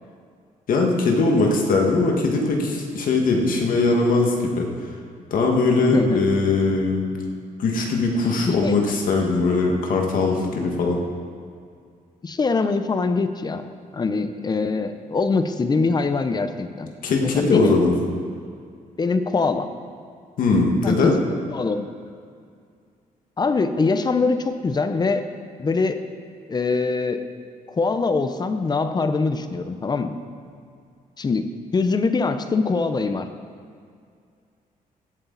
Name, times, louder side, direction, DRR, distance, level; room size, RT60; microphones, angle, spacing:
voice 1, 0.7-4.6 5.3-7.0 7.6-11.0 17.0-17.9 20.4-21.1, left 3 dB, 70° left, 1 dB, 1.9 m, -20 dB
voice 2, 5.9-6.2 8.5-8.7 12.2-13.6 13.9-16.9 17.2-17.8 19.0-19.7 20.8-21.9 23.4-25.2 25.6-26.0 26.5-27.2 27.7-30.1 31.2-33.3, left 4 dB, 30° left, 9 dB, 0.7 m, -23 dB
16.5 x 8.3 x 4.1 m, 2.2 s
cardioid pair, 110°, 15 cm